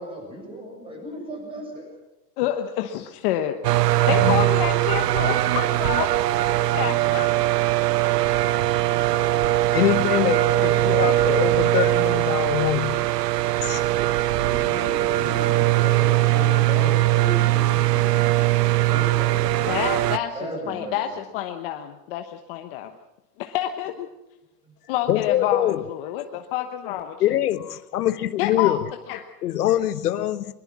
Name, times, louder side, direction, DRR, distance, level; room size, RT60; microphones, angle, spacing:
voice 1, 0.0-1.9 14.3-18.1 18.9-20.0 20.3-21.2 24.6-24.7, equal, 10° right, 2 dB, 7.6 m, -36 dB
voice 2, 2.4-3.6 4.1-6.2 6.6-7.6 19.7-22.9 23.4-24.1 24.9-27.3 28.4-28.8 29.1-29.3, left 12 dB, 35° left, 6 dB, 1.1 m, -28 dB
sound 1, 3.6-20.2, right 16 dB, 75° right, 0.9 m, -21 dB
voice 3, 4.0-4.4 9.7-13.1 13.6-13.8 25.1-25.8 27.2-28.8 29.4-30.5, left 13 dB, 70° left, 12 dB, 1.2 m, -24 dB
22.5 x 22.0 x 6.1 m, 0.91 s
supercardioid pair, 155°, 48 cm